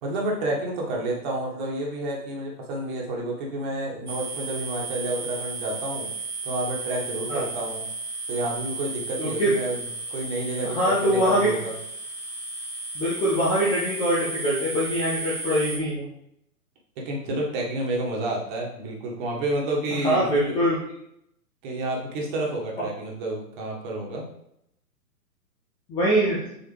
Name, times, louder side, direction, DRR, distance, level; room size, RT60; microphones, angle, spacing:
voice 1, 0.0-6.1 6.4-7.8 8.3-11.7 17.0-20.6 21.6-24.3, right 1 dB, 30° right, -1 dB, 1.7 m, -30 dB
sound 1, 4.1-15.8, right 3 dB, 75° right, 1.7 m, -34 dB
voice 2, 9.2-9.5 10.6-11.6 12.9-16.1 20.0-20.8 25.9-26.5, right 1 dB, 10° left, -7 dB, 0.6 m, -23 dB
7.1 x 4.6 x 3.4 m, 0.76 s
figure-of-eight pair, 120°, 47 cm